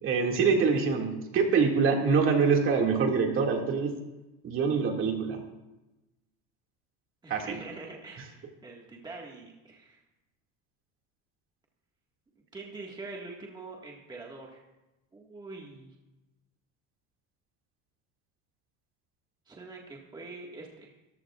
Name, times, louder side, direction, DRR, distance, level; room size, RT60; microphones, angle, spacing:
voice 1, 0.0-3.9 4.4-5.4 7.3-7.6, right 5 dB, 40° right, 1 dB, 2.3 m, -25 dB
voice 2, 7.2-10.0 12.5-14.6 15.1-15.9 19.5-20.9, right 3 dB, 15° right, -2 dB, 1.8 m, -44 dB
24.0 x 14.5 x 2.5 m, 1.0 s
cardioid pair, 155°, 33 cm